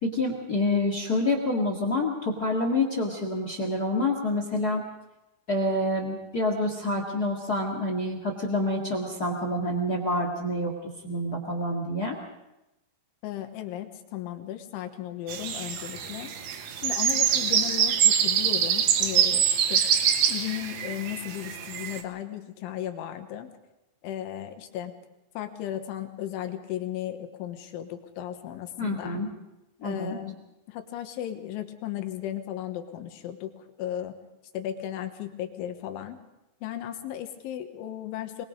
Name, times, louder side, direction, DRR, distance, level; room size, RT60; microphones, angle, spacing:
voice 1, 0.0-4.8 5.5-10.7 11.0-12.1 28.8-29.3 29.8-30.2, left 1 dB, 65° left, 3 dB, 0.9 m, -27 dB
voice 2, 13.2-16.3 16.8-19.9 20.3-23.5 24.0-24.9 25.4-29.2 29.8-30.4 30.7-34.1 34.5-36.2 36.6-38.5, left 12 dB, 80° left, 7 dB, 3.6 m, -35 dB
sound 1, 15.3-22.0, right 8 dB, 65° right, 2.2 m, -25 dB
24.0 x 21.0 x 5.2 m, 0.96 s
omnidirectional pair, 5.5 m